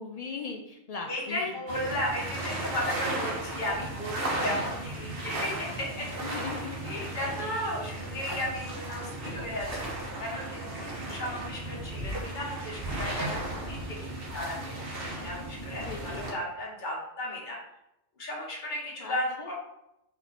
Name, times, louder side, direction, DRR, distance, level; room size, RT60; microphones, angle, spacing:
voice 1, 0.0-1.5 6.2-6.9 7.4-7.7 8.2-8.4 15.8-16.2 19.0-19.5, left 4 dB, 60° left, 2 dB, 0.4 m, -39 dB
voice 2, 1.1-6.1 6.8-9.7 10.2-14.8 15.1-17.6 18.2-19.5, left 1 dB, 45° left, -3 dB, 1.4 m, -35 dB
sound 1, 1.7-16.3, right 1 dB, 55° right, 1.2 m, -35 dB
4.5 x 2.9 x 4.0 m, 0.85 s
omnidirectional pair, 1.2 m